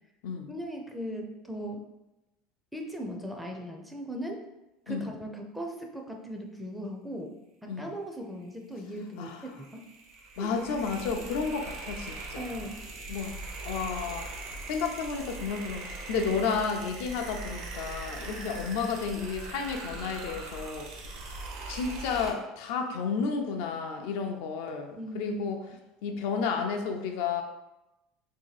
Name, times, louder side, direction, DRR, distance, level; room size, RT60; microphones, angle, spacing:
voice 1, 0.5-1.9 2.7-4.4 4.9-7.3 7.6-9.9 10.4-10.7 11.2-11.3 12.3-12.9 18.3-18.5 25.0-25.4, equal, 5° right, 2 dB, 0.4 m, -38 dB
sound 1, 9.2-22.3, right 2 dB, 60° right, 0.7 m, -41 dB
voice 2, 10.4-12.5 13.1-13.3 13.6-14.3 14.6-21.1 21.7-25.6 26.0-27.4, left 5 dB, 75° left, 4 dB, 0.5 m, -32 dB
2.7 x 2.6 x 4.0 m, 0.96 s
supercardioid pair, 135°, 0 cm